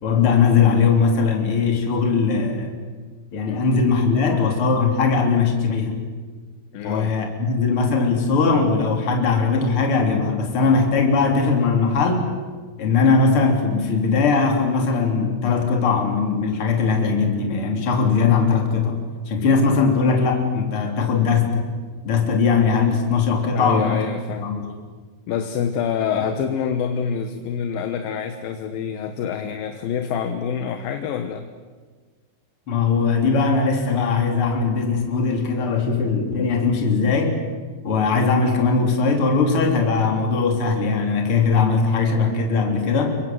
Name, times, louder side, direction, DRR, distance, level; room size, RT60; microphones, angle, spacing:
voice 1, 0.0-2.7 3.3-6.0 6.8-12.3 12.8-21.7 22.0-24.1 24.4-24.8 26.2-26.3 32.7-37.4 37.8-43.2, left 4 dB, 35° left, 2 dB, 3.7 m, -20 dB
voice 2, 3.5-4.5 6.7-7.2 19.4-19.5 23.5-24.6 25.3-31.5, left 7 dB, 70° left, 7 dB, 2.7 m, -27 dB
29.0 x 23.5 x 7.8 m, 1.4 s
omnidirectional pair, 4.8 m